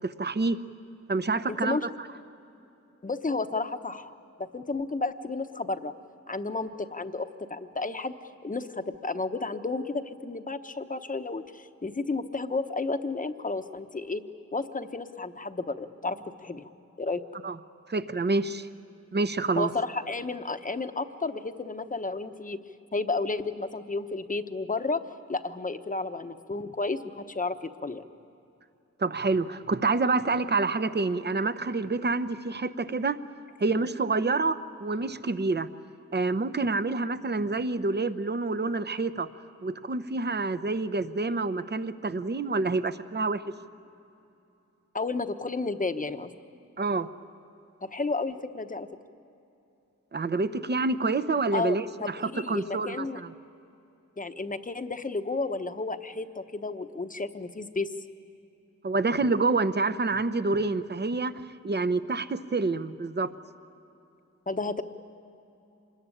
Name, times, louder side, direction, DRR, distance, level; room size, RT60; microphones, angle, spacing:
voice 1, 0.0-0.6 1.1-1.8 17.4-17.6 17.9-18.7 19.1-19.7 29.0-33.2 33.6-35.7 36.1-39.3 39.6-43.4 46.8-47.1 50.1-53.3 58.8-61.3 61.6-63.3, right 3 dB, 35° right, 12 dB, 0.8 m, -27 dB
voice 2, 1.5-1.9 3.0-5.9 6.3-8.1 8.4-14.2 14.5-16.7 17.0-17.2 19.5-22.6 22.9-25.0 25.3-28.1 44.9-46.3 47.8-48.9 51.5-53.2 54.2-57.9 60.5-60.6 64.5-64.8, left 3 dB, 30° left, 8 dB, 1.0 m, -32 dB
26.5 x 21.5 x 9.9 m, 2.9 s
wide cardioid pair, 130°, 29 cm